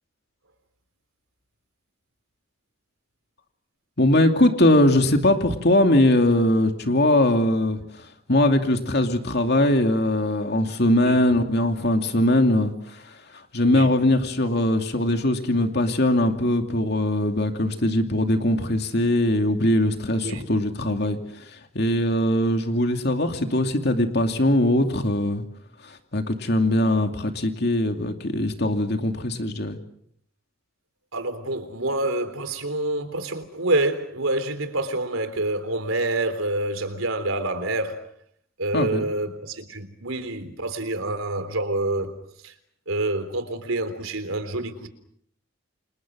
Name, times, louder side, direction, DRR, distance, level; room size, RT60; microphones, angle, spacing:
voice 1, 4.0-25.4 25.8-29.8 38.7-39.1, left 1 dB, 50° left, 2.6 m, -21 dB
voice 2, 31.1-38.1 38.6-42.2 42.4-42.5 42.9-44.9, right 2 dB, 85° right, 3.7 m, -27 dB
29.5 x 28.5 x 6.3 m
head